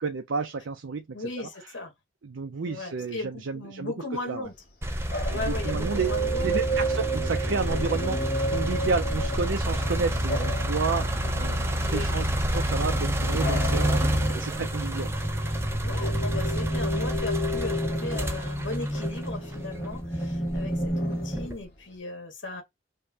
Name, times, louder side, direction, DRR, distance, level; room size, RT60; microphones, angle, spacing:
voice 1, 0.0-1.7 2.2-3.9 4.2-4.5 5.3-6.1 6.4-15.1, right 4 dB, 75° right, 0.5 m, -31 dB
voice 2, 1.1-1.9 2.7-4.5 5.3-6.8 11.8-12.1 15.8-22.6, left 2 dB, 75° left, 1.6 m, -37 dB
Bark / Bird vocalization bird call bird song, 4.4-22.0, left 3 dB, 50° left, 1.9 m, -44 dB
sound 1, 4.8-19.8 20.4-21.6, equal, 15° right, 0.5 m, -30 dB
sound 2, 5.5-21.5, right 1 dB, 25° left, 1.4 m, -30 dB
5.2 x 2.2 x 2.7 m
head